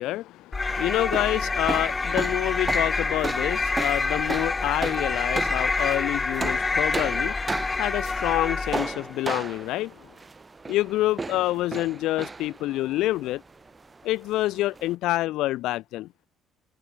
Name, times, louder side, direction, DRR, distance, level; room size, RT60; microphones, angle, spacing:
voice 1, 0.0-7.5 7.7-10.0 10.7-13.4 14.0-16.1, left 16 dB, 80° left, 0.3 m, -27 dB
sound 1, 0.5-9.1, left 3 dB, 25° left, 1.2 m, -27 dB
sound 2, 0.7-14.9, right 4 dB, 25° right, 3.1 m, -36 dB
cardioid pair, 90°, 0 cm